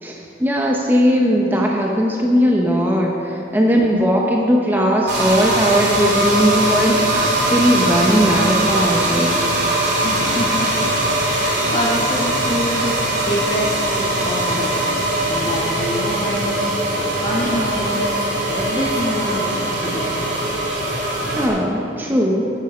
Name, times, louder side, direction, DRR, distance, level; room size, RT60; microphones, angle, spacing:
voice 1, 0.0-9.4 21.4-22.5, equal, 10° right, -1 dB, 0.8 m, -18 dB
sound 1, 5.1-21.5, right 1 dB, 70° right, 2.3 m, -21 dB
voice 2, 10.0-10.8 11.2-14.7 15.3-16.7 17.2-18.2 18.5-20.3, equal, 30° left, -7 dB, 1.2 m, -26 dB
9.4 x 9.2 x 6.0 m, 2.8 s
head